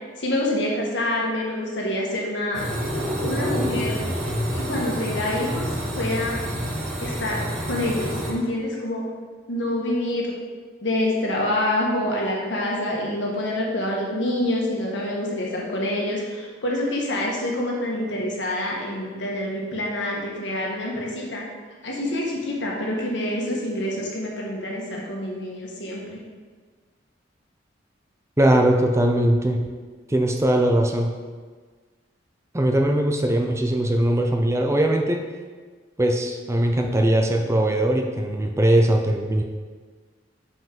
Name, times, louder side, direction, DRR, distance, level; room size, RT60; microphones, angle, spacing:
voice 1, 0.2-2.6 3.2-4.0 4.5-6.4 7.0-9.0 9.5-10.3 10.8-21.4 21.8-26.2, left 1 dB, 70° left, -2 dB, 1.5 m, -26 dB
sound 1, 2.5-8.3, equal, 40° right, 2.0 m, -28 dB
voice 2, 28.4-29.6 30.1-31.1 32.5-35.2 36.0-39.4, right 1 dB, 15° right, 3 dB, 0.5 m, -20 dB
5.7 x 5.6 x 5.2 m, 1.5 s
head